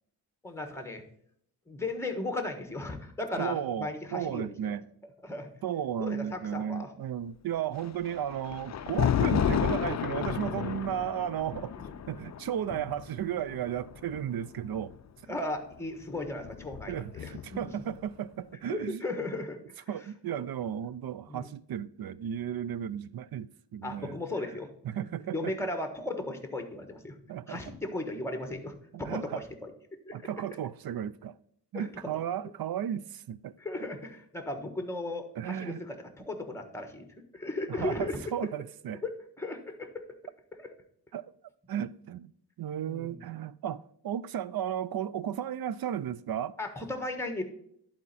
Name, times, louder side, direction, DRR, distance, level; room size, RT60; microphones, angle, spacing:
voice 1, 0.4-1.0 1.7-4.8 5.2-5.5 6.0-6.9 11.8-11.9 15.3-17.3 17.6-17.7 18.7-19.6 21.3-21.5 23.8-24.7 25.3-27.2 27.5-29.7 30.1-30.2 31.7-31.9 33.6-37.1 37.3-38.2 39.0-40.0 40.6-40.7 42.9-43.2 46.6-47.4, left 2 dB, 5° left, 1.3 m, -36 dB
voice 2, 3.4-4.9 5.6-11.7 12.1-14.9 16.9-19.0 19.9-23.5 23.7-24.2 24.8-25.6 27.3-27.6 28.9-29.4 30.1-31.4 31.7-33.9 35.4-35.8 37.7-39.0 41.1-41.3 41.7-42.3 42.6-46.6, right 10 dB, 60° right, 0.5 m, -34 dB
Thunder, 7.8-15.0 16.0-17.8, left 9 dB, 45° left, 0.4 m, -32 dB
11.0 x 4.4 x 4.1 m
wide cardioid pair, 95°, 41 cm